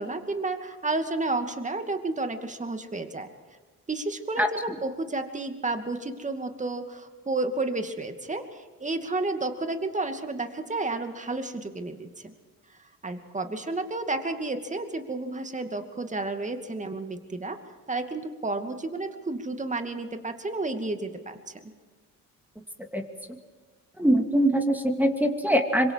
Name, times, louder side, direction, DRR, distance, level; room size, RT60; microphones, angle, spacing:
voice 1, 0.0-3.3 3.9-12.3 13.0-17.6 17.9-21.7, right 2 dB, 20° right, 6 dB, 2.5 m, -31 dB
voice 2, 24.0-25.9, right 1 dB, 5° right, 4 dB, 2.6 m, -22 dB
25.5 x 23.0 x 4.8 m, 1.4 s
supercardioid pair, 80°, 34 cm